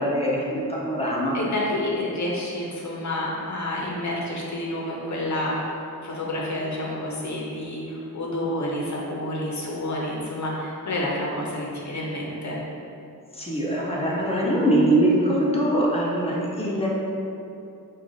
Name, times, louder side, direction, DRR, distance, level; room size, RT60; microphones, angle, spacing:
voice 1, 0.0-1.4 13.3-16.9, right 1 dB, 15° left, -4 dB, 0.7 m, -23 dB
voice 2, 1.3-12.6, left 1 dB, 55° left, -3 dB, 0.8 m, -29 dB
4.8 x 2.4 x 3.9 m, 2.6 s
wide cardioid pair, 155°, 35 cm